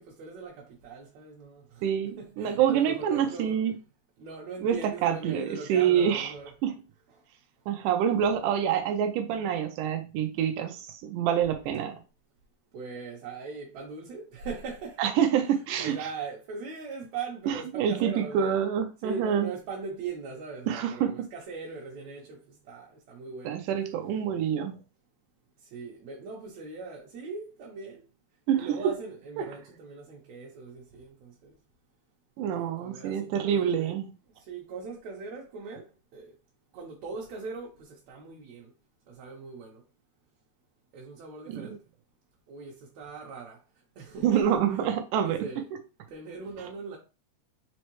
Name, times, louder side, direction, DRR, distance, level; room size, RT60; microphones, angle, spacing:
voice 1, 0.0-3.6 4.2-6.5 12.7-15.0 15.8-18.6 19.0-23.5 25.7-28.0 28.6-31.5 32.5-33.9 34.5-35.8 36.1-36.3 36.7-38.7 39.1-39.8 40.9-41.8 42.5-43.6 44.0-44.5 45.2-45.7 46.1-47.0, right 4 dB, 70° right, 2.0 m, -40 dB
voice 2, 1.8-3.8 4.6-6.3 6.6-6.8 7.7-12.0 15.0-16.0 17.5-19.5 20.7-21.1 23.5-24.8 28.5-28.7 29.4-29.5 32.4-34.1 41.5-41.8 44.2-45.5, right 9 dB, 90° right, 2.2 m, -27 dB
5.4 x 3.1 x 3.1 m
omnidirectional pair, 3.6 m